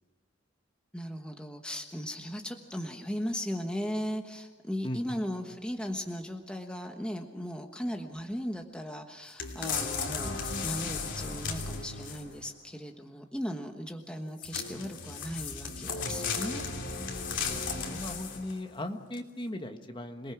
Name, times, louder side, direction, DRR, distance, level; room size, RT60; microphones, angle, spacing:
voice 1, 0.9-16.6, equal, 5° left, 3 dB, 1.2 m, -37 dB
voice 2, 4.8-5.2 17.4-20.3, left 1 dB, 25° left, 6 dB, 1.4 m, -38 dB
sound 1, 9.4-12.4 14.4-18.6 19.1-19.2, left 5 dB, 65° left, 3.0 m, -35 dB
27.0 x 19.5 x 6.0 m, 1.2 s
head